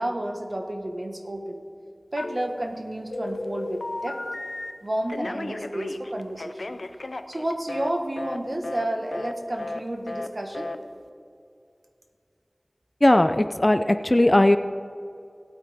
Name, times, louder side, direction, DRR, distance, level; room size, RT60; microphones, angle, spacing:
voice 1, 0.0-1.6 2.1-4.2 4.8-6.8 7.3-10.7, right 1 dB, 50° right, 3 dB, 1.4 m, -31 dB
Telephone, 2.2-2.8 3.1-4.7 5.1-7.9 8.2-8.4 8.6-8.9 9.1-9.3 9.6-9.8 10.1-10.3 10.5-10.8, left 2 dB, 80° left, 0.5 m, -34 dB
voice 2, 13.0-14.6, left 1 dB, 35° left, 10 dB, 0.5 m, -18 dB
18.5 x 8.8 x 3.6 m, 2.4 s
wide cardioid pair, 50°, 0 cm